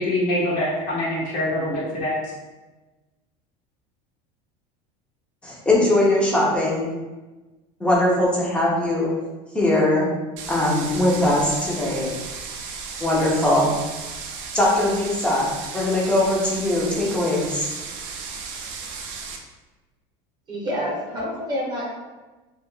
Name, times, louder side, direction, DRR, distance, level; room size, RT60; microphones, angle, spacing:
voice 1, 0.0-2.2, left 1 dB, 50° left, -6 dB, 0.6 m, -24 dB
voice 2, 5.4-6.8 7.8-9.1 9.5-10.1 10.5-12.2 13.0-13.7 14.5-17.7, left 1 dB, 5° left, -4 dB, 0.5 m, -21 dB
sound 1, 10.4-19.4, right 5 dB, 55° right, 0.4 m, -35 dB
voice 3, 20.5-21.8, equal, 30° right, -5 dB, 0.7 m, -27 dB
2.2 x 2.0 x 2.9 m, 1.2 s
cardioid pair, 155°, 15 cm